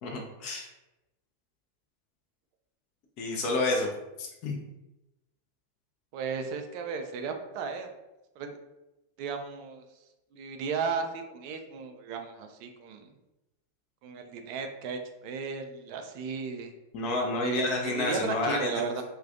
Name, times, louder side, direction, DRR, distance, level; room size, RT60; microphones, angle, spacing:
voice 1, 0.0-0.7 3.2-3.9 4.2-4.6 16.9-18.7, left 2 dB, 40° left, 1 dB, 0.5 m, -29 dB
voice 2, 6.1-7.9 8.4-8.5 9.2-9.8 10.3-13.1 14.0-16.7 17.4-19.0, right 5 dB, 45° right, 5 dB, 0.3 m, -35 dB
2.3 x 2.2 x 2.5 m, 0.96 s
figure-of-eight pair, 90°, 0 cm